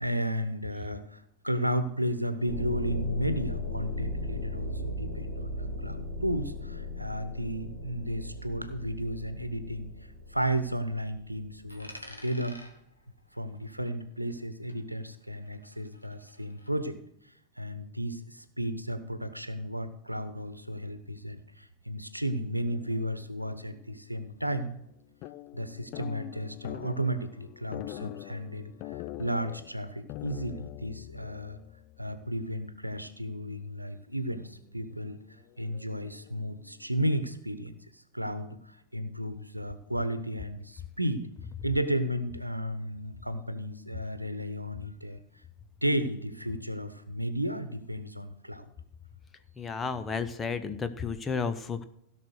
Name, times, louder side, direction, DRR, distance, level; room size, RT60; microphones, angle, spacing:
voice 1, 0.0-9.9 10.3-12.6 13.3-17.0 17.6-24.7 25.5-31.6 32.0-35.2 35.6-41.3 41.6-45.2 45.8-48.7, equal, 90° right, 12 dB, 1.0 m, -33 dB
sound 1, 2.4-11.9, left 1 dB, 70° left, 3.5 m, -37 dB
Coin (dropping), 11.7-14.4 14.7-16.7, left 1 dB, 90° left, 1.7 m, -51 dB
sound 2, 22.7-23.9 24.2-24.3 24.5-24.9 25.2-32.7 32.9-33.0 34.3-34.6 35.0-37.0, left 15 dB, 45° left, 0.5 m, -44 dB
voice 2, 49.6-51.8, left 5 dB, 15° left, 9 dB, 1.0 m, -32 dB
16.0 x 6.0 x 6.4 m, 0.76 s
figure-of-eight pair, 90°, 0 cm